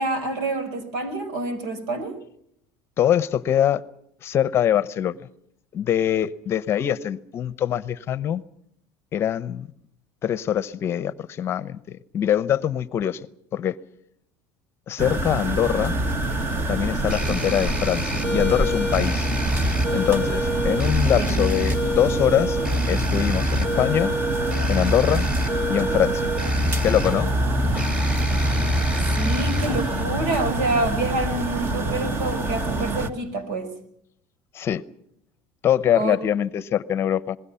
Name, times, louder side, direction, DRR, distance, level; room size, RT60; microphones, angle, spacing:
voice 1, 0.0-2.1 21.2-21.3 29.1-33.7 35.9-36.2, right 2 dB, 80° right, 5.2 m, -27 dB
voice 2, 3.0-3.8 4.2-5.2 5.7-8.4 9.1-9.7 10.2-13.3 13.5-13.8 14.9-16.0 16.7-19.3 19.9-22.6 22.9-24.1 24.7-25.2 25.7-26.3 26.8-27.3 34.5-34.8 35.6-37.4, left 10 dB, 35° left, 0.8 m, -23 dB
sound 1, 15.0-33.1, right 2 dB, 30° right, 1.8 m, -27 dB
sound 2, 15.5-30.0, left 1 dB, 15° right, 3.3 m, -26 dB
27.0 x 20.5 x 5.7 m
cardioid pair, 140°, 7 cm